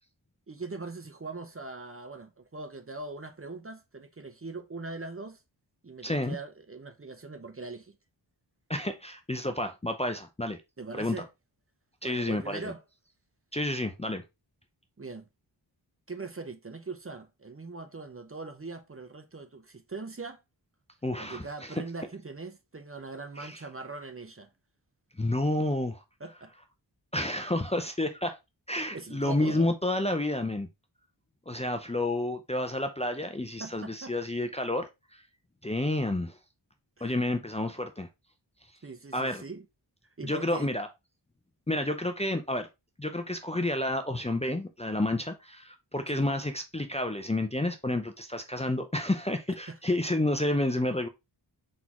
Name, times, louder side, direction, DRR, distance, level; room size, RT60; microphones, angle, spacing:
voice 1, 0.5-5.4 5.8-8.0 10.8-11.3 12.0-12.8 15.0-15.2 16.1-20.4 21.2-24.5 26.2-26.5 28.9-29.7 33.6-34.1 37.0-37.1 38.8-39.7 40.2-40.7 46.1-46.3 49.7-49.8, right 3 dB, 30° right, 0.7 m, -41 dB
voice 2, 6.0-6.4 8.7-10.6 10.9-11.2 12.0-12.7 13.5-14.2 21.0-21.8 23.4-23.6 25.2-26.0 27.1-28.4 28.7-30.7 31.5-35.2 35.6-36.4 37.0-38.1 39.1-39.4 40.2-40.9 41.7-42.7 43.0-51.1, left 1 dB, 15° left, 0.6 m, -30 dB
4.1 x 3.7 x 2.9 m
wide cardioid pair, 50°, 45 cm